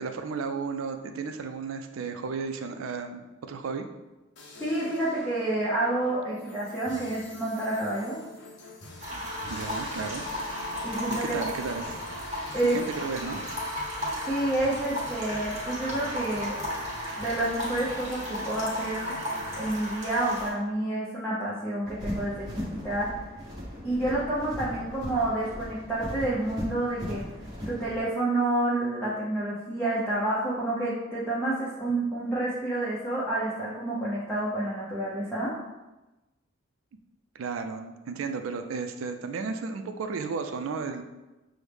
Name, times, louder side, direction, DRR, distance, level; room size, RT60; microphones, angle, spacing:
voice 1, 0.0-3.9 9.1-10.3 11.1-12.0 12.6-13.4 37.3-41.0, right 5 dB, 80° right, 6 dB, 0.4 m, -34 dB
sound 1, 4.4-19.7, left 2 dB, 60° left, 0.6 m, -44 dB
voice 2, 4.6-8.2 10.8-11.4 12.5-12.8 14.3-16.6 17.2-19.1 19.6-23.2 23.8-27.2 27.7-35.5, right 1 dB, 5° left, -8 dB, 0.7 m, -29 dB
sound 2, 9.0-20.5, equal, 35° right, 1.3 m, -35 dB
sound 3, 21.8-28.0, equal, 20° right, 1.0 m, -38 dB
6.1 x 2.1 x 3.4 m, 1.1 s
head